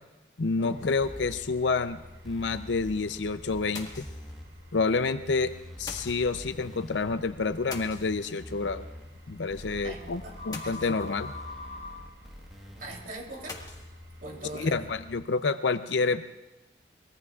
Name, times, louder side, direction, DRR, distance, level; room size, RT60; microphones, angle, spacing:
voice 1, 0.4-2.0 2.2-4.1 4.7-5.5 5.8-8.8 9.3-11.3 14.5-16.2, left 4 dB, 80° left, 11 dB, 0.6 m, -28 dB
sound 1, 0.7-15.2, left 2 dB, 85° right, 4.7 m, -47 dB
sound 2, 0.8-1.3 1.8-1.9 2.1-2.2 3.7-4.6 5.9-6.5 7.7-8.6 10.5-11.3 13.5-14.0, left 3 dB, 20° left, 1.7 m, -44 dB
sound 3, 1.0-1.4 2.2-3.2 3.5-4.4 5.2-7.4 8.0-9.1 9.5-10.5 11.0-13.0, equal, ahead, 1.4 m, -46 dB
voice 2, 9.8-10.3 10.6-11.1 12.8-13.6 14.2-14.9, right 2 dB, 50° right, 0 dB, 3.4 m, -41 dB
24.5 x 21.0 x 2.4 m, 1.1 s
head